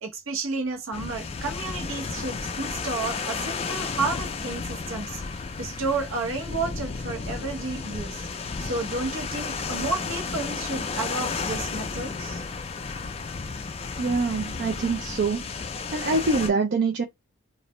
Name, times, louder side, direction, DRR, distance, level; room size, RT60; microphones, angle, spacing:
voice 1, 0.0-8.3 8.6-12.4, right 3 dB, 70° right, 0.9 m, -31 dB
sound 1, 0.9-16.5, left 4 dB, 30° left, 0.3 m, -33 dB
voice 2, 14.0-15.4 15.9-17.0, right 3 dB, 50° right, 0.4 m, -24 dB
2.5 x 2.0 x 3.0 m
head